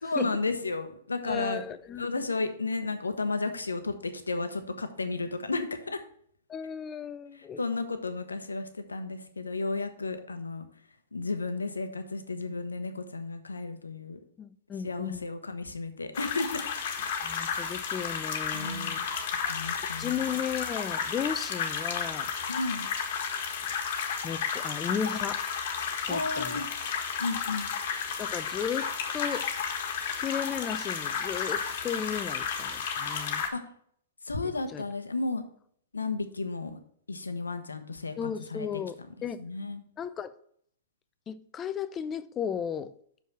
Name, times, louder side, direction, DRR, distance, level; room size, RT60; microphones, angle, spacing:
voice 1, 0.0-1.6 2.0-6.0 7.3-10.7 11.1-14.2 14.8-16.6 18.5-19.1 19.5-20.3 22.5-22.9 26.1-26.7 27.2-27.7 33.5-33.6 34.2-35.4 35.9-36.8 37.1-38.8 39.4-39.8, left 3 dB, 90° left, 0.9 m, -33 dB
voice 2, 1.2-2.1 6.5-7.6 14.4-15.2 17.2-19.0 20.0-22.3 24.2-25.5 26.1-26.6 28.2-29.5 30.2-33.4 34.7-34.8 38.2-39.0 39.2-39.4 40.0-40.3 41.3-42.9, left 7 dB, 25° left, 0.6 m, -35 dB
sound 1, 16.1-33.5, left 6 dB, 55° left, 1.4 m, -32 dB
6.3 x 5.5 x 5.9 m
hypercardioid pair, 115°, 0 cm